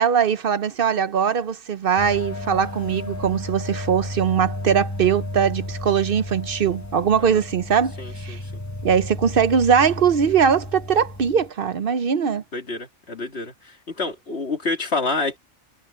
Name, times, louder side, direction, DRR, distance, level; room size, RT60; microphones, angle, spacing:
voice 1, 0.0-8.4 8.8-12.4, right 7 dB, 55° right, 0.8 m, -21 dB
sound 1, 2.0-11.5, left 1 dB, 15° left, 1.2 m, -33 dB
voice 2, 8.0-8.4 12.5-15.4, left 3 dB, 60° left, 2.6 m, -28 dB
omnidirectional pair, 1.3 m